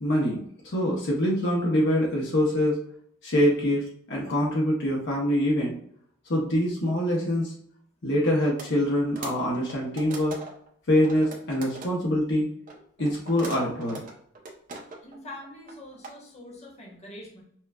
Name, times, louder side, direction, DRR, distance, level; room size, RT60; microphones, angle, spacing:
voice 1, 0.0-2.8 3.2-5.7 6.3-7.5 8.0-10.3 10.9-12.5 13.0-14.0, equal, 60° left, -3 dB, 0.8 m, -24 dB
sound 1, 8.6-8.7 9.0-10.7 11.0-11.9 12.7-15.2 15.4-16.1, right 3 dB, 40° right, 0.7 m, -40 dB
voice 2, 15.0-17.4, left 1 dB, 35° left, -2 dB, 1.1 m, -44 dB
5.6 x 2.3 x 2.3 m, 0.64 s
head